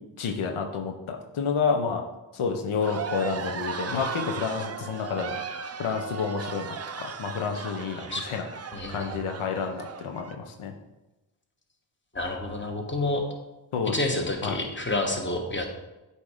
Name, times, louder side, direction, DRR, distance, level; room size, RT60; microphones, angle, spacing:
voice 1, 0.2-2.0 2.3-5.4 5.8-8.5 8.9-10.7 13.7-13.9 14.4-14.6, left 5 dB, 85° left, 3 dB, 0.7 m, -29 dB
sound 1, 2.8-10.3, right 6 dB, 35° right, 0.5 m, -36 dB
voice 2, 8.7-9.1 12.1-13.2 13.9-15.6, left 2 dB, 25° left, 2 dB, 1.2 m, -29 dB
8.1 x 2.8 x 4.8 m, 1.0 s
cardioid pair, 45°, 48 cm